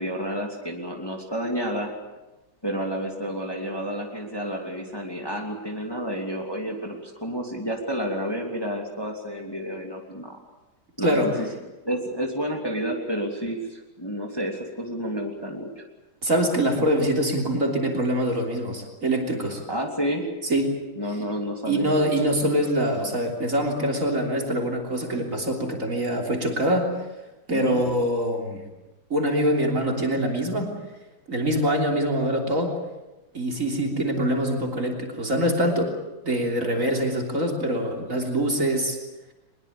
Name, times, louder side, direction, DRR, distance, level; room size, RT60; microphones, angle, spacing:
voice 1, 0.0-1.9 2.6-10.4 11.0-11.5 11.8-15.8 19.7-20.2 21.0-22.0 27.5-27.8, equal, 10° left, 1 dB, 2.9 m, -30 dB
voice 2, 11.0-11.4 16.2-19.6 20.5-20.8 21.7-27.0 27.5-28.6 29.1-30.7 31.3-32.7 33.3-35.9 36.2-39.0, equal, 40° right, 1 dB, 3.7 m, -24 dB
22.5 x 21.5 x 8.6 m, 1.1 s
omnidirectional pair, 2.1 m